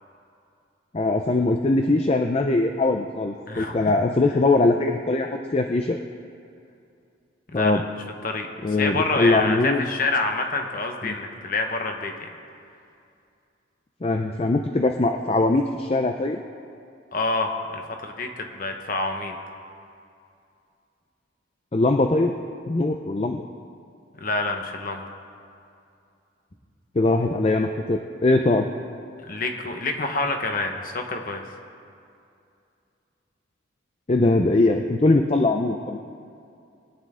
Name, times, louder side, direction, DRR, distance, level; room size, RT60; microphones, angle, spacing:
voice 1, 0.9-6.0 7.5-7.8 8.6-9.9 11.0-11.1 14.0-16.4 21.7-22.3 22.7-23.5 27.0-28.7 34.1-36.0, left 2 dB, 30° left, 5 dB, 0.4 m, -21 dB
voice 2, 3.5-4.0 7.5-7.8 8.2-12.3 17.1-19.4 24.2-25.0 29.3-31.4, left 3 dB, 45° left, 4 dB, 1.1 m, -27 dB
21.0 x 9.8 x 3.7 m, 2.5 s
head